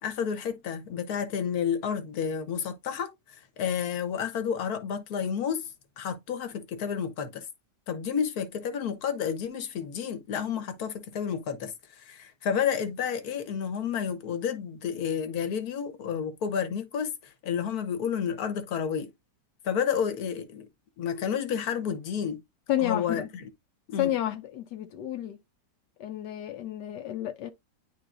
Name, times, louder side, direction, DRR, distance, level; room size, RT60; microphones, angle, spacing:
voice 1, 0.0-5.6 6.0-7.5 7.9-17.1 17.4-19.1 19.6-20.7 21.0-22.4 22.8-23.5 23.9-24.1, left 7 dB, 65° left, 1.5 m, -30 dB
voice 2, 22.7-23.3 24.0-25.4 26.0-27.5, left 12 dB, 80° left, 1.3 m, -30 dB
10.0 x 3.8 x 2.5 m
omnidirectional pair, 1.8 m